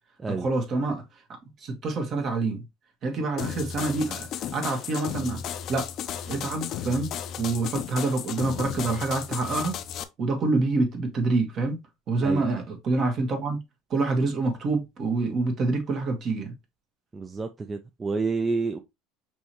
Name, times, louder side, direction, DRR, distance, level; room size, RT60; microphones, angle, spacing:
voice 1, 0.3-1.0 1.6-2.6 3.0-5.4 5.7-5.9 6.3-7.1 7.4-9.8 10.2-11.8 12.1-13.6 13.9-16.5, right 3 dB, 45° right, 1.6 m, -26 dB
sound 1, 3.4-10.0, left 9 dB, 55° left, 0.5 m, -34 dB
voice 2, 17.1-18.8, right 4 dB, 25° right, 0.5 m, -29 dB
5.3 x 3.0 x 3.0 m
supercardioid pair, 90°, 0 cm